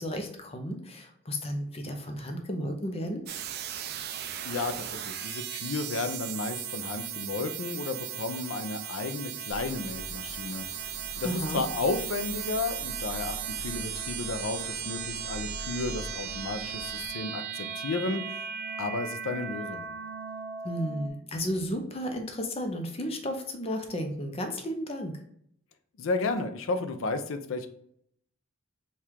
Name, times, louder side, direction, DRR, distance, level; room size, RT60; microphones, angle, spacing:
voice 1, 0.0-3.2 11.2-11.6 20.6-25.2, equal, 30° left, 5 dB, 0.6 m, -33 dB
sound 1, 3.3-21.1, right 8 dB, 50° right, 0.3 m, -37 dB
voice 2, 4.4-10.7 11.2-18.4 18.8-19.9 26.0-27.7, left 3 dB, 75° left, 9 dB, 0.5 m, -33 dB
sound 2, 9.5-17.1, right 1 dB, 70° right, 0.9 m, -44 dB
4.5 x 2.4 x 3.5 m, 0.68 s
head